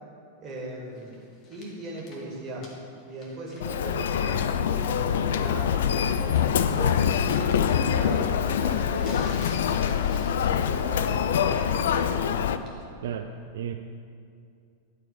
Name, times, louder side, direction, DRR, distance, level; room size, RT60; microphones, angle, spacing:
voice 1, 0.4-1.1 1.5-2.7 3.1-12.4, right 1 dB, 25° right, -4 dB, 2.0 m, -39 dB
sound 1, 0.9-3.9 4.2-4.3 5.9-6.6 7.0-7.3 8.9-10.9 11.2-11.6 12.6-12.8, left 2 dB, 35° left, 1.5 m, -51 dB
Human voice, 3.6-12.6, left 8 dB, 60° left, 0.3 m, -25 dB
voice 2, 13.0-13.7, right 8 dB, 60° right, 5 dB, 0.3 m, -33 dB
10.5 x 4.7 x 4.7 m, 2.5 s
figure-of-eight pair, 90°, 0 cm